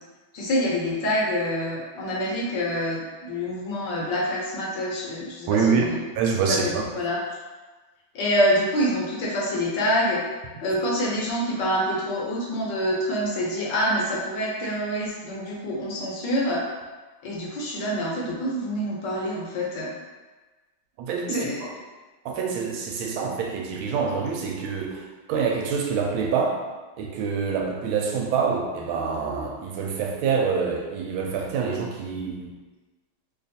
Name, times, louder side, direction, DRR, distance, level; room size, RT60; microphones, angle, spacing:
voice 1, 0.3-6.0 6.5-7.2 8.1-10.2 10.6-16.7 17.2-19.9 21.3-21.7, equal, 65° left, -4 dB, 1.3 m, -26 dB
voice 2, 5.5-6.9 21.0-21.7 22.2-25.0 25.3-26.6 27.0-32.5, right 5 dB, 80° right, 1 dB, 1.4 m, -26 dB
3.3 x 2.4 x 4.0 m, 1.3 s
omnidirectional pair, 2.2 m